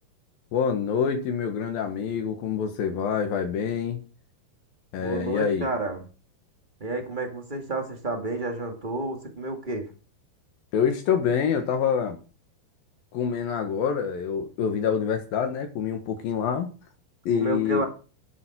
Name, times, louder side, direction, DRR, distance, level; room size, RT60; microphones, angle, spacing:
voice 1, 0.5-4.0 4.9-5.7 10.7-12.2 13.1-16.7 17.3-17.8, left 7 dB, 70° left, 6 dB, 3.2 m, -26 dB
voice 2, 5.0-6.1 6.8-9.9 17.3-17.8, right 2 dB, 20° right, 4 dB, 1.3 m, -30 dB
11.0 x 9.7 x 6.2 m, 0.35 s
omnidirectional pair, 4.5 m